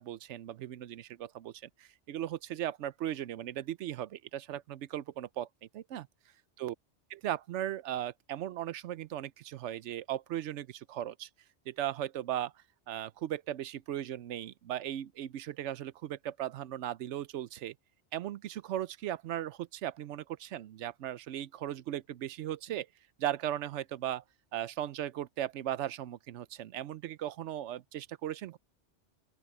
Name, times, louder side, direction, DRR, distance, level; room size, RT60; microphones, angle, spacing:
voice 1, 0.0-5.5 5.7-6.1 6.6-6.7 7.1-11.3 11.7-12.5 12.9-17.7 18.1-22.9 23.2-24.2 24.5-28.6, right 12 dB, 85° right, 0.9 m, -37 dB
open air
omnidirectional pair, 1.2 m